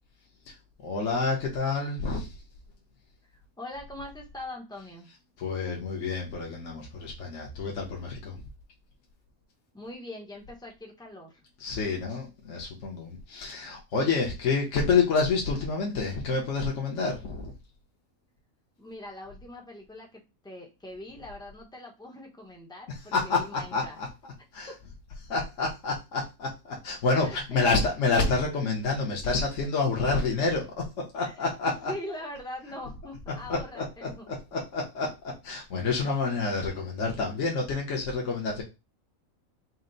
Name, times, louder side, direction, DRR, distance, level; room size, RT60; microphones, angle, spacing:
voice 1, 0.8-2.3 5.4-8.4 11.6-17.5 23.1-23.9 24.5-24.7 25.3-31.9 33.5-34.1 34.5-38.6, left 4 dB, 65° left, -2 dB, 1.1 m, -28 dB
voice 2, 3.6-5.1 9.7-11.4 18.8-24.0 24.7-24.8 27.2-27.6 31.2-31.3 31.7-34.3, left 1 dB, 5° left, 1 dB, 0.5 m, -42 dB
4.3 x 2.0 x 3.8 m, 0.25 s
omnidirectional pair, 1.5 m